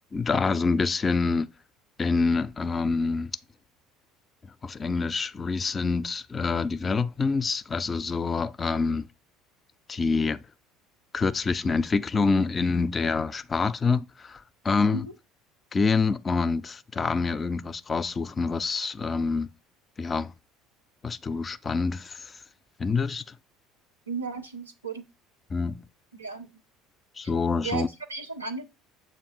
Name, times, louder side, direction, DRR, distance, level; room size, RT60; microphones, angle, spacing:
voice 1, 0.1-1.5 2.0-3.3 4.6-9.1 9.9-10.4 11.1-15.1 15.7-19.5 20.0-20.3 21.0-22.3 22.8-23.3 25.5-25.8 27.2-27.9, left 4 dB, 30° left, 0.4 m, -26 dB
voice 2, 24.1-25.0 26.1-26.5 27.6-28.7, right 4 dB, 90° right, 0.6 m, -34 dB
7.0 x 2.6 x 5.2 m
figure-of-eight pair, 65°, 0 cm